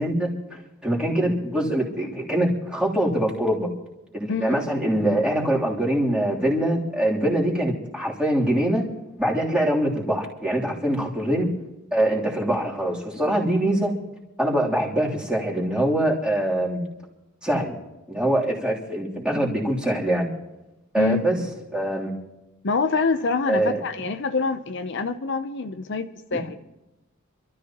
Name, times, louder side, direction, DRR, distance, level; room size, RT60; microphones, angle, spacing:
voice 1, 0.0-3.7 4.1-8.8 9.2-11.5 11.9-13.9 14.4-16.8 17.4-17.8 18.1-20.3 20.9-21.4 21.7-22.1 23.5-23.8, right 1 dB, 5° right, -4 dB, 3.2 m, -23 dB
voice 2, 4.3-4.6 11.0-11.1 21.0-21.2 22.6-26.6, left 4 dB, 60° left, 7 dB, 0.7 m, -26 dB
27.0 x 13.5 x 3.0 m, 0.97 s
head